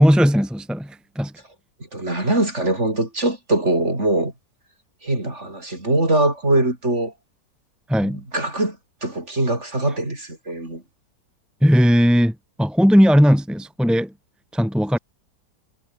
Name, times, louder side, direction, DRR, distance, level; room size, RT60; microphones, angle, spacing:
voice 1, 0.0-1.3 7.9-8.2 11.6-14.1 14.5-15.0, equal, ahead, 2.5 m, -17 dB
voice 2, 1.9-4.3 5.0-7.1 8.0-10.8, right 2 dB, 40° right, 6.1 m, -22 dB
omnidirectional pair, 1.9 m